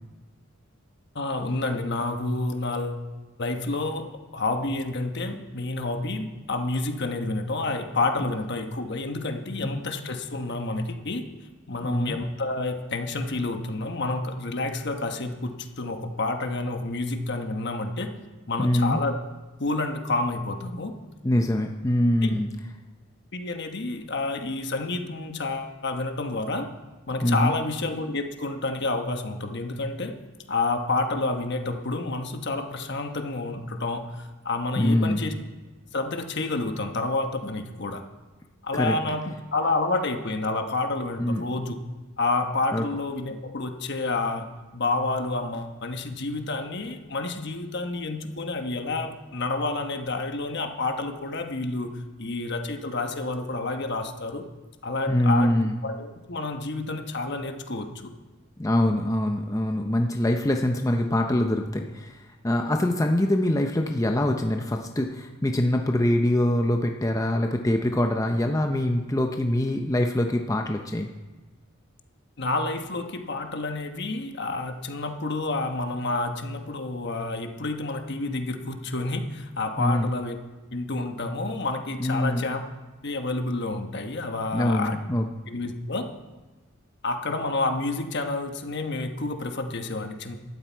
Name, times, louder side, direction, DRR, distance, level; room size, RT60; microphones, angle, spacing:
voice 1, 1.1-3.0 3.4-11.3 11.7-18.1 18.5-19.2 19.6-21.0 22.2-22.4 23.3-26.7 27.1-30.2 30.5-35.3 35.9-38.0 38.6-41.8 42.2-54.5 54.8-58.1 72.4-80.4 80.7-82.6 83.0-85.0 85.5-86.2 87.0-90.4, left 2 dB, 55° left, 6 dB, 1.2 m, -29 dB
voice 2, 11.8-12.2 18.6-19.0 21.2-22.5 27.2-27.6 34.8-35.2 38.7-38.9 41.2-41.4 42.7-42.8 55.1-55.8 58.6-62.1 62.4-71.1 79.8-80.1 82.0-82.4 84.5-85.2, left 1 dB, 15° left, 3 dB, 0.6 m, -24 dB
14.5 x 12.5 x 4.5 m, 1.2 s
head